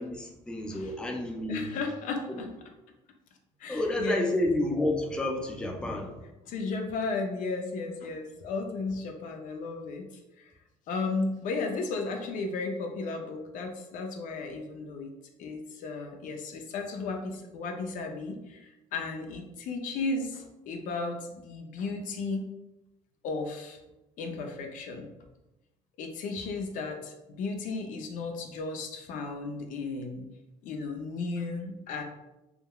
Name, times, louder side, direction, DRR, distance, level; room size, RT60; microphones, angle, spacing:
voice 1, 0.0-1.8 2.3-2.5 3.7-6.2 6.6-6.7, left 1 dB, 5° left, 1 dB, 0.4 m, -30 dB
voice 2, 1.5-2.5 3.6-4.3 6.5-10.1 10.4-10.5 10.9-15.1 15.4-22.5 23.2-23.8 24.2-25.1 26.0-30.3 30.6-32.0, left 3 dB, 70° left, 4 dB, 0.5 m, -34 dB
3.5 x 2.2 x 2.2 m, 0.98 s
cardioid pair, 110°, 14 cm